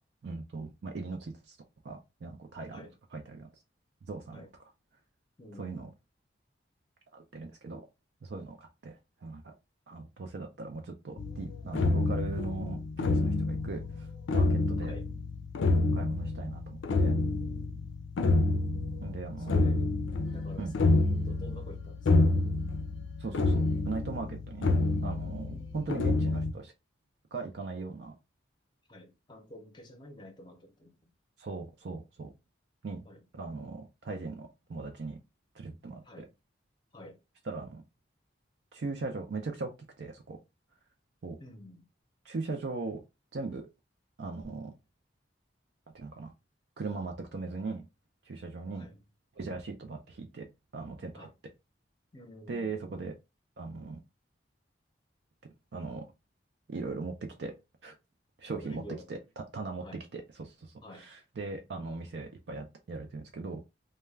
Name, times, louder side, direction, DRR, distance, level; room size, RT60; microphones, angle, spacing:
voice 1, 0.2-1.6 1.8-2.9 3.1-3.5 4.1-4.4 5.5-5.9 7.1-7.8 8.2-9.5 9.9-14.1 14.3-15.0 15.9-17.2 19.0-19.6 20.6-20.8 23.2-24.7 25.0-26.7 27.3-28.2 31.4-32.3 32.8-33.0 33.3-35.2 35.5-36.3 37.4-37.8 38.7-39.7 40.0-40.4 41.2-41.4 42.2-43.0 43.3-43.6 44.2-44.7 45.9-46.3 46.8-47.9 48.2-48.9 49.4-50.5 50.7-51.3 52.5-53.1 53.6-54.0 55.7-56.0 56.7-57.5 57.8-57.9 58.4-58.8 59.1-63.6, right 3 dB, 60° right, 0.4 m, -39 dB
voice 2, 5.4-5.9 14.8-15.0 17.4-17.9 19.5-19.9 20.3-20.9 21.3-22.0 25.5-25.9 28.9-30.9 33.0-33.2 36.1-36.3 36.9-37.2 41.4-41.8 48.8-49.0 51.1-51.3 52.1-52.7 58.6-59.0 59.8-60.0 60.8-61.1, left 1 dB, 25° left, 0.6 m, -49 dB
sound 1, 11.2-26.5, left 2 dB, 90° left, 0.4 m, -28 dB
2.3 x 2.1 x 3.2 m
head